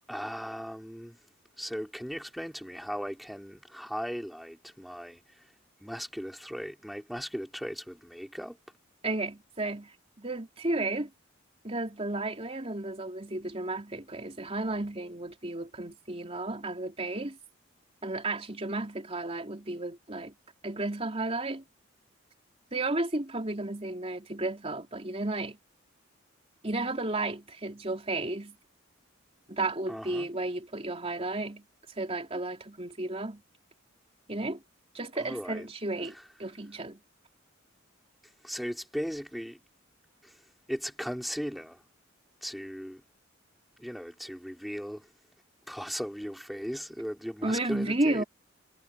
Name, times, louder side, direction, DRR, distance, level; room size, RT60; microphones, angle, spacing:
voice 1, 0.1-1.2 1.6-5.5 5.8-8.6 29.9-30.3 35.2-35.7 36.0-36.3 38.4-39.6 40.2-40.4 40.7-41.8 42.4-43.0 43.8-45.1 45.7-48.2, equal, ahead, 3.9 m, -37 dB
voice 2, 9.0-9.9 10.2-11.1 11.6-17.4 18.0-20.3 20.6-21.6 22.7-25.6 26.6-28.6 29.5-31.6 32.0-33.4 34.3-34.6 34.9-36.1 36.4-37.0 47.4-48.2, right 2 dB, 30° right, 3.6 m, -33 dB
head